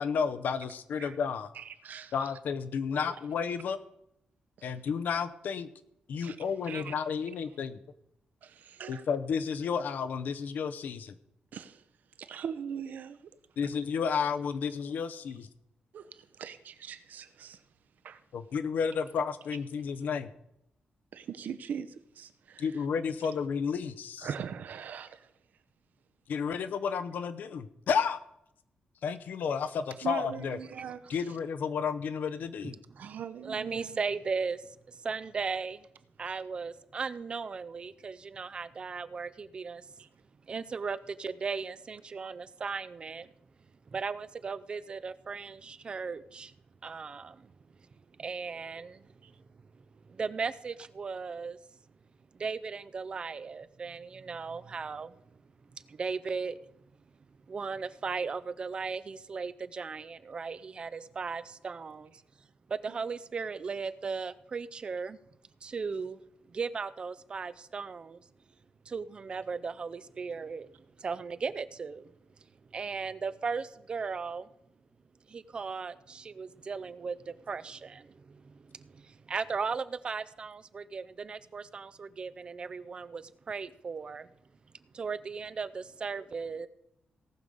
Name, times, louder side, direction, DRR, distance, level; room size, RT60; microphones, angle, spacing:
voice 1, 0.0-1.5 2.1-3.8 4.6-5.7 6.1-7.8 8.9-11.1 13.6-15.5 18.3-20.3 22.6-24.3 26.3-28.2 29.0-30.6 31.1-32.8, left 6 dB, 65° left, 0.8 m, -32 dB
voice 2, 1.5-2.3 3.0-3.2 6.2-7.0 8.4-9.1 11.5-11.8 12.2-13.3 15.9-17.6 18.0-18.2 21.1-22.8 24.2-25.3 30.0-31.4 33.0-34.0 36.3-36.4 40.0-40.1 49.2-49.3 62.9-63.0 86.2-86.3, right 7 dB, 65° right, 0.8 m, -41 dB
voice 3, 32.6-33.2 33.4-35.9 36.2-39.9 40.5-43.3 43.9-46.5 46.8-47.5 48.2-49.4 49.8-51.6 52.3-55.2 55.7-56.6 57.5-62.1 62.7-65.2 65.6-66.2 66.5-68.2 68.9-70.7 71.0-72.1 72.7-74.5 75.3-84.3 84.9-86.7, right 5 dB, 30° right, 0.5 m, -37 dB
17.5 x 6.6 x 5.4 m
wide cardioid pair, 175°, 3 cm